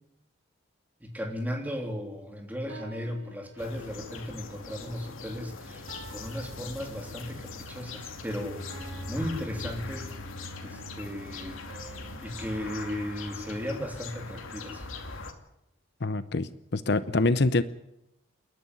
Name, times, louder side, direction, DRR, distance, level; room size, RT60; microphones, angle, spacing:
voice 1, 1.0-8.6 9.1-10.1 10.6-11.6 12.2-15.0 16.9-17.2, equal, 10° right, 2 dB, 3.2 m, -36 dB
sound 1, 2.7-4.2 5.9-7.5 8.7-10.6 11.7-14.0, right 2 dB, 60° right, 4.1 m, -51 dB
sound 2, 3.6-15.3, left 3 dB, 80° left, 2.5 m, -41 dB
voice 2, 16.0-17.6, left 3 dB, 55° left, 14 dB, 0.7 m, -25 dB
28.5 x 11.0 x 9.8 m, 0.83 s
head